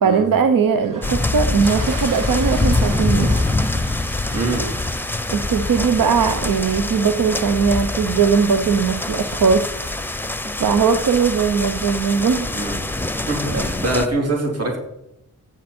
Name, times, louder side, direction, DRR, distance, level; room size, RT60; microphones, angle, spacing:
voice 1, 0.0-3.3 5.3-9.7 10.6-12.5 13.5-13.6, right 6 dB, 85° right, 8 dB, 0.9 m, -19 dB
sound 1, 0.8-8.1, right 3 dB, 70° right, 2.4 m, -37 dB
sound 2, 1.0-14.1, left 2 dB, 5° left, 0.8 m, -24 dB
voice 2, 4.3-4.6 12.5-12.7 13.3-14.8, right 2 dB, 50° right, -1 dB, 3.9 m, -23 dB
15.0 x 10.0 x 4.5 m, 0.83 s
wide cardioid pair, 100°, 33 cm